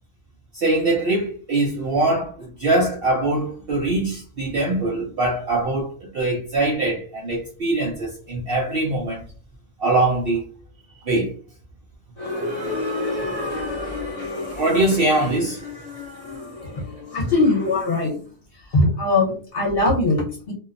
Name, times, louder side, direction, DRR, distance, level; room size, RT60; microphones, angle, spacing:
voice 1, 0.5-9.2 9.8-10.4 11.0-11.3 14.5-15.6, right 2 dB, 60° right, 0.6 m, -22 dB
sound 1, 12.2-18.1, left 2 dB, 35° left, 0.7 m, -31 dB
voice 2, 17.1-18.2 18.5-20.5, left 2 dB, 50° left, 1.0 m, -21 dB
2.7 x 2.1 x 2.4 m
omnidirectional pair, 1.4 m